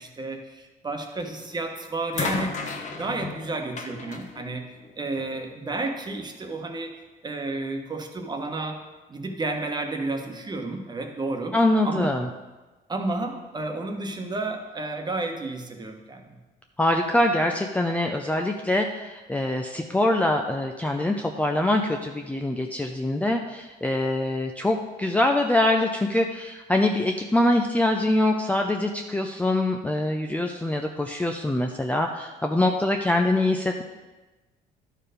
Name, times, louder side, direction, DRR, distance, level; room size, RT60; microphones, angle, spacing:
voice 1, 0.0-4.6 5.0-6.9 7.2-8.8 9.1-11.5 11.8-12.1 12.9-16.4, right 2 dB, 25° right, 4 dB, 1.3 m, -31 dB
sound 1, 1.2-1.5 2.1-5.4 6.4-6.5, left 4 dB, 45° left, 1.2 m, -34 dB
voice 2, 11.5-12.3 16.8-33.8, left 1 dB, 10° left, 2 dB, 0.5 m, -24 dB
11.5 x 4.6 x 5.1 m, 1.2 s
cardioid pair, 110°, 17 cm